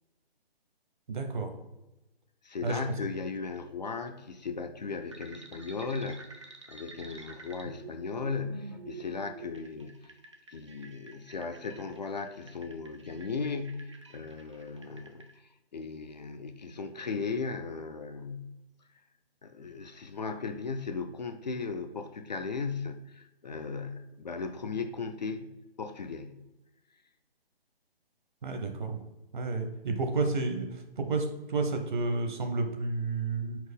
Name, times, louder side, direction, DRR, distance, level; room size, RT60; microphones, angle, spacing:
voice 1, 1.1-1.5 2.6-2.8 28.4-29.0 29.3-33.6, right 3 dB, 50° right, 5 dB, 1.0 m, -31 dB
voice 2, 2.4-10.1 10.5-18.6 19.4-26.4, left 4 dB, 45° left, 7 dB, 0.4 m, -37 dB
sound 1, 5.1-15.3, right 3 dB, 30° right, 0.4 m, -49 dB
4.7 x 3.9 x 5.2 m, 1.0 s
hypercardioid pair, 160°, 31 cm